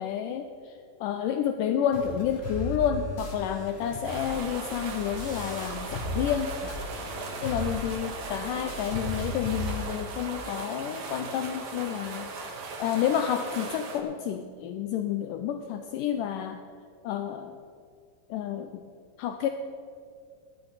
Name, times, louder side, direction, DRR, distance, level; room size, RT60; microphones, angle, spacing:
voice 1, 0.0-6.8 7.4-12.3 12.8-16.6 17.0-17.6 18.3-18.8 19.2-19.5, left 9 dB, 80° left, 7 dB, 2.1 m, -30 dB
sound 1, 1.9-6.4 6.7-9.9, left 1 dB, 35° left, 1.0 m, -37 dB
sound 2, 4.0-14.0, right 4 dB, 75° right, 3.3 m, -38 dB
18.5 x 13.0 x 4.0 m, 2.2 s
omnidirectional pair, 3.9 m